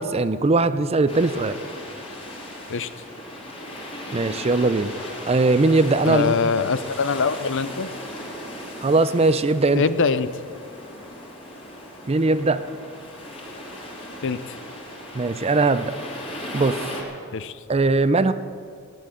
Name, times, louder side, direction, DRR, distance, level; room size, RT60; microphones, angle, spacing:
voice 1, 0.0-1.6 4.1-4.9 5.3-6.5 8.8-9.8 12.1-12.6 15.1-15.9 16.5-16.8 17.7-18.3, right 3 dB, 30° right, 13 dB, 0.5 m, -20 dB
sound 1, 1.1-17.0, left 1 dB, 25° left, 3.4 m, -37 dB
voice 2, 6.1-7.9 9.7-10.3 14.2-14.6 17.3-17.6, left 5 dB, 60° left, 14 dB, 0.6 m, -23 dB
16.5 x 10.5 x 7.7 m, 2.3 s
head